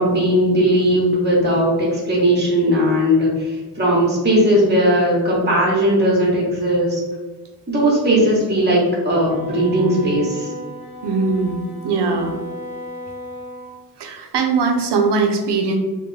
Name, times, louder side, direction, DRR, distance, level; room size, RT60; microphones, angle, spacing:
voice 1, 0.0-7.0 7.7-10.5, equal, 25° right, -4 dB, 0.9 m, -17 dB
Wind instrument woodwind instrument, 9.2-13.8, equal, 20° left, 0.4 m, -35 dB
voice 2, 11.0-12.3 14.0-15.8, right 4 dB, 85° right, 4 dB, 0.5 m, -20 dB
2.2 x 2.2 x 3.1 m, 1.2 s
cardioid pair, 60°, 40 cm